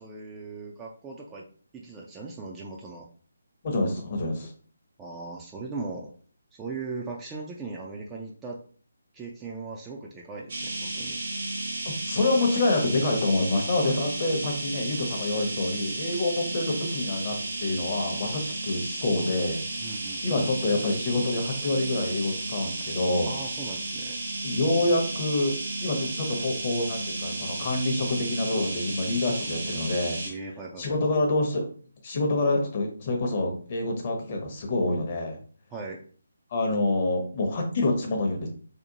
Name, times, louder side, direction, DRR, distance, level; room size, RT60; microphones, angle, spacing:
voice 1, 0.0-1.4 1.7-3.1 4.4-4.5 5.0-6.1 6.5-8.6 9.1-11.2 19.8-20.4 23.3-24.2 30.2-31.0 35.7-36.0, right 3 dB, 15° right, -2 dB, 0.3 m, -38 dB
voice 2, 3.6-4.5 11.9-17.3 17.6-19.6 20.2-23.3 24.4-30.2 30.8-31.6 32.0-35.4 36.5-38.5, left 2 dB, 35° left, 2 dB, 0.7 m, -27 dB
sound 1, 10.5-30.3, right 2 dB, 50° right, 0.7 m, -33 dB
2.7 x 2.1 x 2.7 m, 0.43 s
figure-of-eight pair, 150°, 0 cm